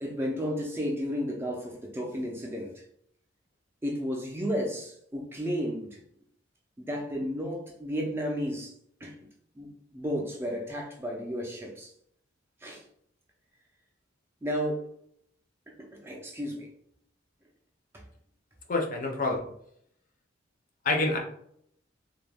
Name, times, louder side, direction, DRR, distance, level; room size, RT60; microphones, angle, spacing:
voice 1, 0.0-2.8 3.8-6.0 6.8-8.7 9.0-9.1 9.6-11.9 12.6-12.8 14.4-14.9 15.7-16.7 17.9-18.0, equal, 10° right, 0.4 m, -33 dB
voice 2, 18.7-19.4 20.8-21.2, left 2 dB, 45° left, 0.5 m, -27 dB
2.3 x 2.1 x 3.3 m
head